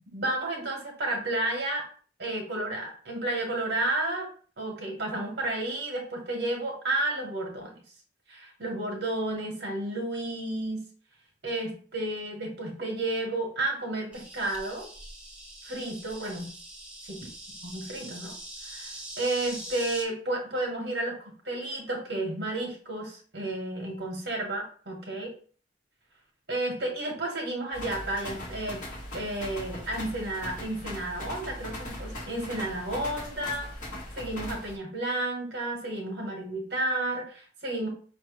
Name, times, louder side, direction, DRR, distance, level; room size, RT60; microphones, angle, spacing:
voice 1, 0.1-1.8 2.2-4.3 4.6-7.8 8.3-10.8 11.4-14.9 15.6-16.5 17.1-17.2 17.6-18.3 18.6-25.3 26.5-28.8 29.1-33.7 34.2-37.9, right 1 dB, 60° right, 0 dB, 1.4 m, -32 dB
Insect, 14.1-20.0, right 1 dB, 5° right, 1.0 m, -43 dB
sound 1, 27.7-34.8, left 1 dB, 45° left, 1.8 m, -39 dB
5.2 x 3.1 x 3.2 m, 0.41 s
head